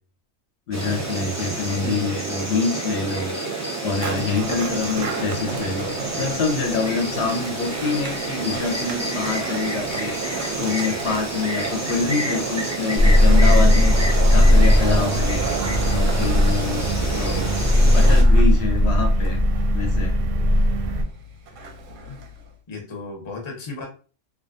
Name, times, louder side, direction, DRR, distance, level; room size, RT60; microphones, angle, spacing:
voice 1, 0.7-3.4 3.8-13.9 14.3-15.5 15.9-17.5 17.9-19.4 19.7-20.1 22.1-22.2, left 4 dB, 70° left, 2 dB, 0.8 m, -26 dB
Insect, 0.7-18.2, right 2 dB, 20° right, 0.4 m, -29 dB
voice 2, 1.8-2.2 17.8-18.1 22.7-23.9, left 2 dB, 30° left, 1 dB, 0.6 m, -34 dB
Skateboard, 3.9-22.5, right 3 dB, 85° right, 0.9 m, -34 dB
sound 1, 13.0-21.0, left 1 dB, 65° right, 0.7 m, -17 dB
2.5 x 2.2 x 2.5 m, 0.37 s
omnidirectional pair, 1.3 m